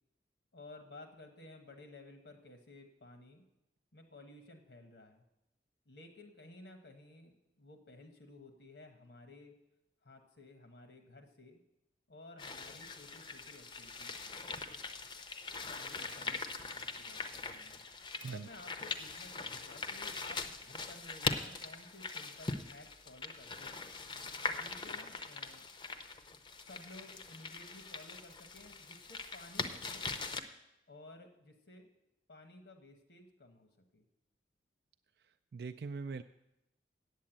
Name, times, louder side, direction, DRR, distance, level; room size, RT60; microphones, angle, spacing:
voice 1, 0.5-3.5 3.9-5.2 5.9-9.5 10.0-11.6 12.1-14.4 15.7-17.9 18.3-23.8 24.4-25.7 26.6-30.1 30.9-31.9 32.3-34.0, left 2 dB, 80° left, 5 dB, 1.1 m, -55 dB
sound 1, 12.4-30.4, left 4 dB, 25° left, 0.6 m, -42 dB
voice 2, 18.2-18.5 35.5-36.2, right 4 dB, 60° right, 8 dB, 0.3 m, -41 dB
8.3 x 7.5 x 8.8 m, 0.89 s
head